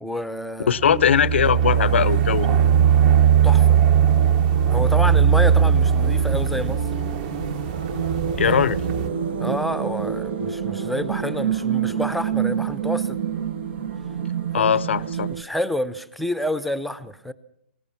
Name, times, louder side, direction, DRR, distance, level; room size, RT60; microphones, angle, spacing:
voice 1, 0.0-1.0 3.4-3.8 4.7-6.8 8.5-8.6 9.4-13.2 14.6-14.7 15.3-17.3, left 1 dB, ahead, 0.8 m, -28 dB
voice 2, 0.7-2.5 8.4-8.8 14.5-15.3, left 8 dB, 80° left, 0.7 m, -20 dB
sound 1, 0.8-9.1, right 8 dB, 40° right, 1.5 m, -19 dB
sound 2, 1.7-15.4, right 8 dB, 70° right, 1.8 m, -28 dB
20.5 x 18.5 x 7.2 m
hypercardioid pair, 150°, 6 cm